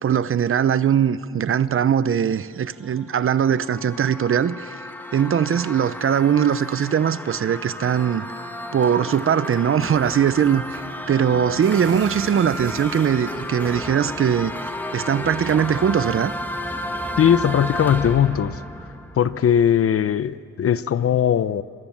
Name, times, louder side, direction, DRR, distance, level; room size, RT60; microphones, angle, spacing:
voice 1, 0.0-4.7 5.1-8.2 8.7-10.8 11.1-14.5 14.9-16.3, right 8 dB, 45° right, 15 dB, 0.8 m, -20 dB
sound 1, 2.8-19.8, equal, 5° left, 2.1 m, -32 dB
sound 2, 11.6-13.2 14.4-14.6 16.5-16.7 17.0-18.2, right 7 dB, 90° right, 3.5 m, -43 dB
voice 2, 17.2-18.6 19.2-21.6, left 9 dB, 50° left, 15 dB, 0.8 m, -19 dB
26.5 x 24.0 x 7.4 m, 2.2 s
cardioid pair, 90°, 30 cm